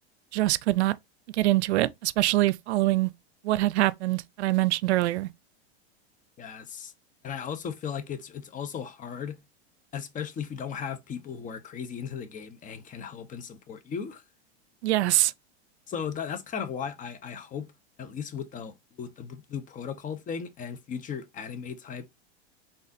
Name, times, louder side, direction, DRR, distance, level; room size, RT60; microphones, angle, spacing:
voice 1, 0.3-0.9 1.3-3.1 3.4-5.3 14.8-15.3, right 16 dB, 85° right, 0.5 m, -24 dB
voice 2, 6.4-6.9 7.2-9.4 9.9-14.2 15.9-17.7 18.0-22.1, left 7 dB, 25° left, 0.8 m, -36 dB
4.1 x 3.5 x 2.6 m
supercardioid pair, 125°, 32 cm